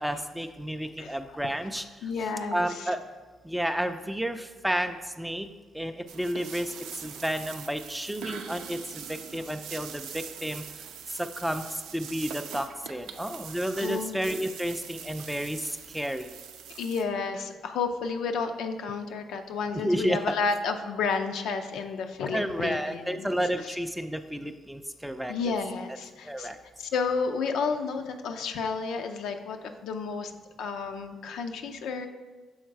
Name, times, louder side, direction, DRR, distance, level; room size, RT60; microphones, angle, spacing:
voice 1, 0.0-1.8 2.5-3.0 3.4-5.5 5.7-6.7 7.0-10.6 11.2-11.6 11.9-16.3 19.7-20.3 22.3-25.5 26.3-26.6, equal, 5° right, 8 dB, 0.4 m, -31 dB
voice 2, 2.0-2.9 13.8-14.2 16.7-23.3 23.6-23.7 25.3-26.5 26.8-30.3 30.6-32.1, left 5 dB, 80° left, 6 dB, 0.5 m, -31 dB
sound 1, 6.1-17.0, right 7 dB, 90° right, 0.5 m, -42 dB
6.4 x 3.9 x 4.6 m, 1.3 s
cardioid pair, 90°, 0 cm